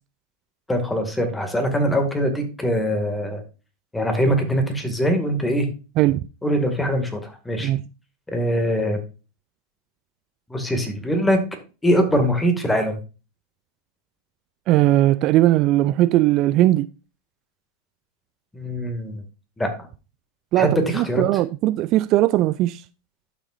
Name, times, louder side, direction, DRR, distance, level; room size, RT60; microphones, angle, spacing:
voice 1, 0.7-3.4 3.9-5.7 6.4-7.7 8.3-9.0 10.5-11.4 11.8-13.0 18.5-19.2 19.6-19.7 20.6-21.2, equal, 10° left, 2.1 m, -22 dB
voice 2, 14.7-16.9 20.5-22.8, right 15 dB, 45° right, 0.3 m, -19 dB
11.5 x 6.1 x 2.6 m
hypercardioid pair, 90°, 0 cm